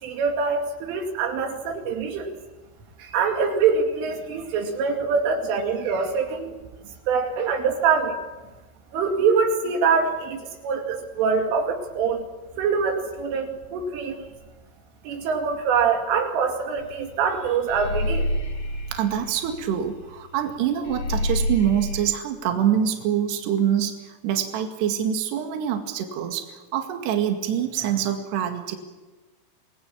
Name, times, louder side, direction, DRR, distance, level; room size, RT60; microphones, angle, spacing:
voice 1, 0.0-2.3 3.0-6.5 7.1-8.2 8.9-12.3 12.6-14.3 15.0-18.3, right 5 dB, 85° right, 3 dB, 4.9 m, -24 dB
sound 1, 16.8-17.0 17.3-20.1 20.4-20.5 20.9-22.1, left 1 dB, 50° left, 3.4 m, -28 dB
voice 2, 18.9-28.8, right 9 dB, 65° right, 4 dB, 4.0 m, -25 dB
28.0 x 19.5 x 7.4 m, 1.2 s
omnidirectional pair, 5.6 m